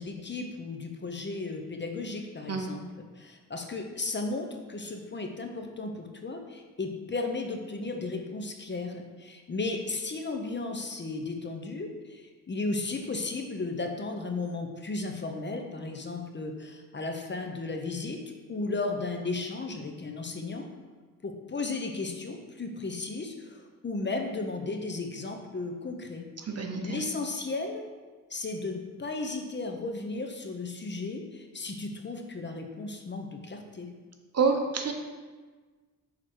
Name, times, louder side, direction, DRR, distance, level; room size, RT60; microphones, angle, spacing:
voice 1, 0.0-18.2 18.5-20.6 21.2-26.3 26.8-27.8 28.3-33.9, left 3 dB, 30° left, 4 dB, 0.8 m, -35 dB
voice 2, 26.6-27.0 34.3-34.9, right 4 dB, 45° right, 4 dB, 0.9 m, -27 dB
6.3 x 3.7 x 4.7 m, 1.4 s
cardioid pair, 75°, 34 cm